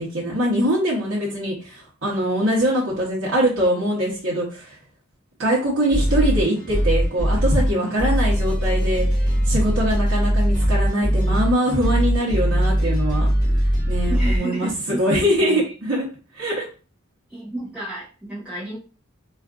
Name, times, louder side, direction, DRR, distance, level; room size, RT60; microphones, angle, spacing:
voice 1, 0.0-4.8 5.4-13.3 13.5-16.1 16.3-16.7, equal, 70° right, -6 dB, 1.0 m, -23 dB
sound 1, 5.8-14.4, equal, 25° left, 1.4 m, -21 dB
voice 2, 11.0-11.3 14.1-15.7 17.3-18.8, right 1 dB, 5° right, -12 dB, 1.1 m, -32 dB
3.5 x 2.5 x 2.4 m, 0.36 s
head